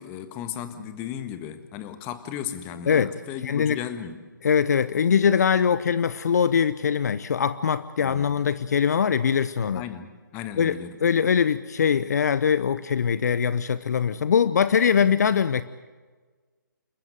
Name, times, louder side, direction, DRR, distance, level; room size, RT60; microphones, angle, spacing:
voice 1, 0.0-4.2 8.0-8.4 9.7-11.0, left 9 dB, 20° left, 10 dB, 1.6 m, -35 dB
voice 2, 3.4-3.8 4.4-9.8 10.6-15.6, left 7 dB, 50° left, 15 dB, 0.8 m, -22 dB
28.5 x 14.0 x 9.2 m, 1.4 s
figure-of-eight pair, 150°, 11 cm